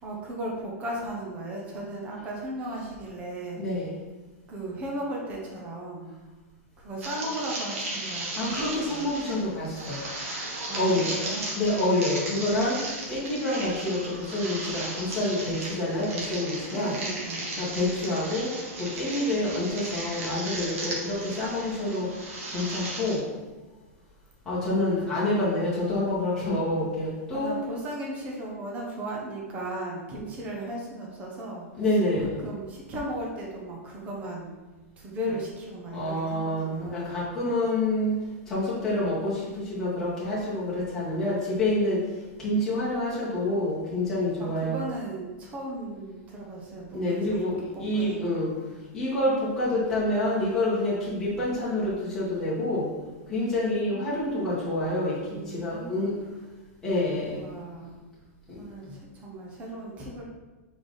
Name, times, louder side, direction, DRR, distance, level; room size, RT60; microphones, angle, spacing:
voice 1, 0.0-3.6 4.5-6.1 6.8-9.0 10.6-11.5 16.7-17.5 24.7-25.2 27.3-31.7 32.2-34.5 35.0-37.2 44.4-48.7 53.3-54.5 55.3-56.0 57.3-57.9 58.5-60.2, right 1 dB, 15° right, -2 dB, 1.0 m, -36 dB
voice 2, 3.6-4.0 8.4-10.0 10.7-11.1 11.5-12.8 13.1-16.9 17.6-18.5 18.8-22.1 22.5-23.2 24.4-27.5 31.8-32.3 35.9-38.1 38.5-42.0 42.4-44.7 46.9-48.5 48.9-52.9 53.3-56.1 56.8-57.4 58.5-58.6, left 1 dB, 5° left, -10 dB, 1.8 m, -27 dB
sound 1, 7.0-23.2, right 2 dB, 60° right, 1.9 m, -36 dB
5.0 x 4.6 x 4.0 m, 1.2 s
supercardioid pair, 175°, 8 cm